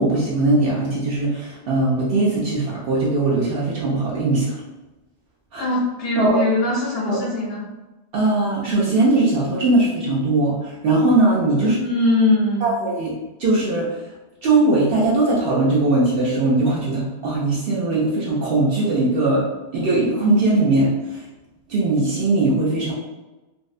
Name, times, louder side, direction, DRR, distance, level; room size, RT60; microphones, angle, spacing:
voice 1, 0.0-4.6 5.5-5.6 6.2-6.4 7.1-7.2 8.1-11.8 12.6-13.1 13.4-14.0 14.4-19.4 19.7-21.3 21.7-22.9, right 2 dB, 65° right, -5 dB, 0.7 m, -20 dB
voice 2, 5.6-7.6 11.6-12.7, left 2 dB, 65° left, -7 dB, 0.9 m, -21 dB
2.6 x 2.0 x 2.4 m, 1.1 s
omnidirectional pair, 1.1 m